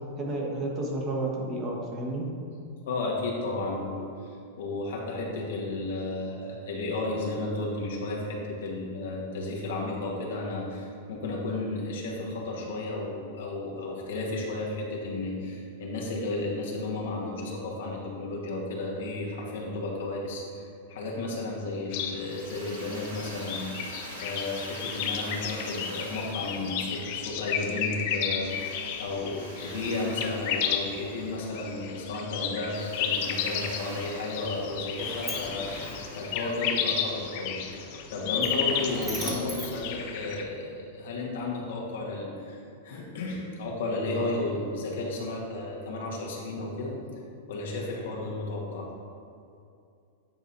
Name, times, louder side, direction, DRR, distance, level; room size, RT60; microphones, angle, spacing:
voice 1, 0.2-2.3, right 2 dB, 30° right, -2 dB, 1.1 m, -31 dB
voice 2, 2.9-4.1 4.6-23.7 24.2-28.5 29.0-47.0 47.5-48.9, left 2 dB, 80° left, -2 dB, 1.3 m, -33 dB
sound 1, 21.9-40.4, left 8 dB, 50° left, 0.5 m, -33 dB
Drill, 22.2-27.7 28.4-31.7 32.7-37.5, right 2 dB, 85° right, 1.4 m, -46 dB
Sliding door, 34.6-40.7, equal, 10° right, 0.9 m, -41 dB
9.0 x 4.1 x 2.6 m, 2.5 s
supercardioid pair, 145°, 0 cm